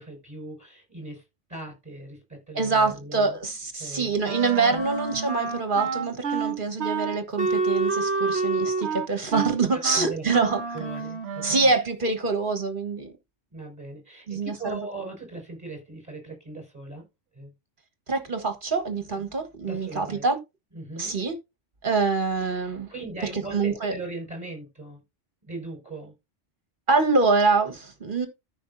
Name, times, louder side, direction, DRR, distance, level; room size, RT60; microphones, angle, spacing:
voice 1, 0.0-3.4 3.7-4.2 4.7-4.8 9.1-10.3 10.7-11.6 13.5-17.0 17.3-17.5 19.1-19.2 19.6-20.3 20.7-21.2 22.9-25.0 25.4-26.1, right 2 dB, 15° right, 5.5 m, -39 dB
voice 2, 2.5-10.6 11.4-13.1 14.3-14.8 18.1-20.4 21.0-21.4 21.8-22.9 23.5-23.9 26.9-28.3, right 4 dB, 45° right, 1.6 m, -25 dB
Wind instrument woodwind instrument, 4.2-11.8, right 4 dB, 65° right, 1.2 m, -28 dB
14.0 x 5.5 x 2.7 m
omnidirectional pair, 1.2 m